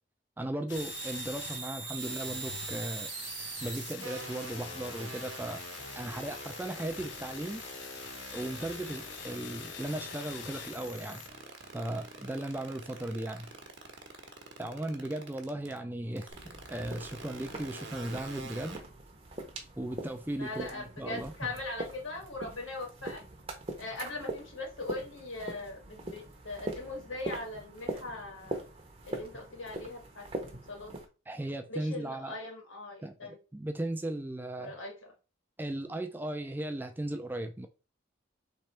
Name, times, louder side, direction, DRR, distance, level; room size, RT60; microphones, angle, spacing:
voice 1, 0.4-3.1 3.6-5.6 6.0-7.6 8.3-11.2 11.7-13.5 14.6-16.3 16.7-18.8 19.8-21.3 31.3-32.4 33.0-34.8 35.6-37.7, right 1 dB, 10° right, 0.3 m, -37 dB
sound 1, 0.7-11.3, left 8 dB, 60° left, 0.5 m, -45 dB
sound 2, 0.7-15.8 16.2-18.8, right 5 dB, 65° right, 1.0 m, -43 dB
voice 2, 2.0-2.4 13.1-13.2 20.3-23.2 23.8-28.6 29.0-31.0 31.7-33.4 34.6-35.1, left 2 dB, 80° left, 1.7 m, -41 dB
sound 3, 16.3-31.1, right 1 dB, 30° right, 0.8 m, -42 dB
3.5 x 3.3 x 4.2 m
head